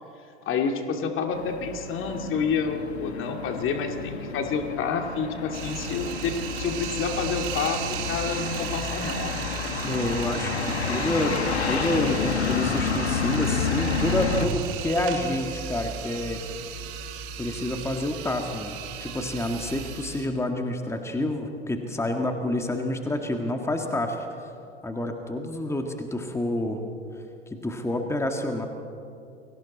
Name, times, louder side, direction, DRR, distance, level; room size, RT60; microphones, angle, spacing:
voice 1, 0.5-7.8 8.1-9.4, left 5 dB, 40° left, 4 dB, 2.4 m, -28 dB
sound 1, 1.3-14.5, left 5 dB, 80° left, 2.0 m, -30 dB
sound 2, 5.5-20.3, right 5 dB, 55° right, 2.4 m, -35 dB
voice 2, 9.8-11.4 11.7-16.4 17.4-24.3 24.8-26.8 27.6-28.7, left 1 dB, 10° left, 4 dB, 2.0 m, -28 dB
30.0 x 23.0 x 4.3 m, 2.5 s
figure-of-eight pair, 80°, 32 cm